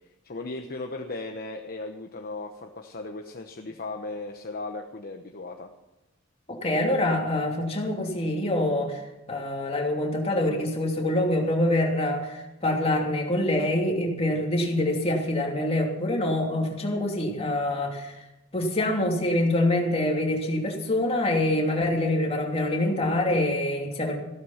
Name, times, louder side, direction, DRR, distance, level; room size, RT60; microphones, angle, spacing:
voice 1, 0.2-5.7, left 2 dB, 45° left, 4 dB, 1.0 m, -36 dB
voice 2, 6.5-9.0 9.3-18.2 18.5-24.2, left 1 dB, 30° left, 0 dB, 2.9 m, -25 dB
15.5 x 13.0 x 5.8 m, 0.99 s
head